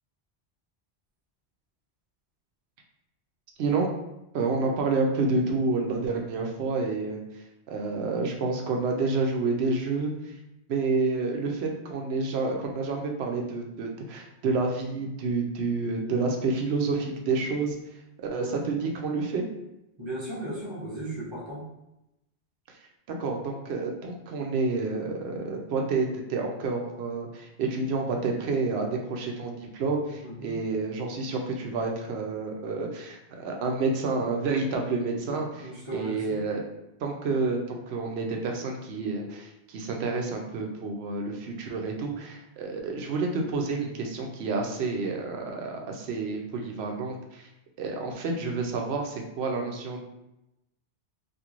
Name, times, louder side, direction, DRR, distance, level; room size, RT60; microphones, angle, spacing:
voice 1, 4.3-7.2 7.7-10.3 10.7-17.8 18.3-19.4 23.1-36.6 37.0-47.5 47.8-50.1, right 3 dB, 70° right, 2 dB, 0.8 m, -29 dB
voice 2, 18.3-18.7 20.0-21.7 30.2-30.6 35.6-36.4, right 1 dB, 30° right, -7 dB, 0.7 m, -36 dB
3.0 x 2.6 x 2.4 m, 0.89 s
omnidirectional pair, 1.1 m